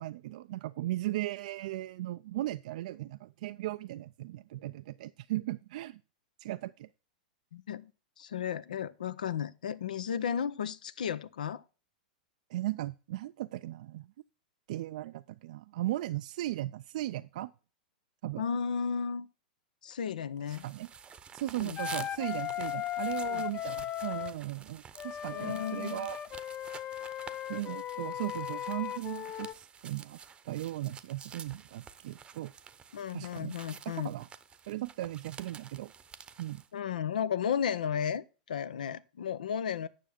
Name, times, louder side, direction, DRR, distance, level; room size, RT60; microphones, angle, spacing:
voice 1, 0.0-6.0 6.4-6.9 12.5-14.1 14.7-17.5 18.2-18.4 20.5-20.9 21.3-26.2 27.5-30.2 30.4-32.5 33.1-33.5 33.9-34.3 34.7-35.9 36.4-36.6, right 15 dB, 65° right, 0.3 m, -37 dB
voice 2, 7.5-7.9 8.2-11.6 18.4-19.3 19.8-20.7 21.6-21.8 23.3-23.4 25.3-26.1 32.9-34.1 36.7-39.9, left 7 dB, 80° left, 0.6 m, -34 dB
sound 1, 20.5-36.7, right 7 dB, 20° right, 0.8 m, -50 dB
Wind instrument woodwind instrument, 21.8-24.4 25.0-29.5, left 12 dB, 30° left, 0.4 m, -37 dB
9.2 x 6.4 x 4.2 m
hypercardioid pair, 105°, 4 cm